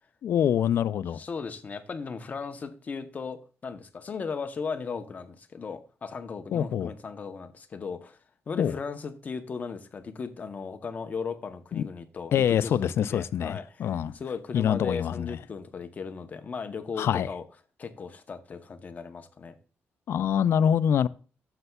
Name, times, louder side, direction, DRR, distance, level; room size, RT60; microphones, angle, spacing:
voice 1, 0.2-1.2 6.5-6.9 8.6-8.7 11.7-11.8 12.3-14.1 14.5-15.4 17.0-17.3 20.1-21.1, left 9 dB, 65° left, 0.3 m, -25 dB
voice 2, 1.1-8.2 8.5-17.4 17.8-19.6, left 5 dB, 35° left, 0.7 m, -37 dB
12.0 x 6.8 x 2.3 m
wide cardioid pair, 155°, 5 cm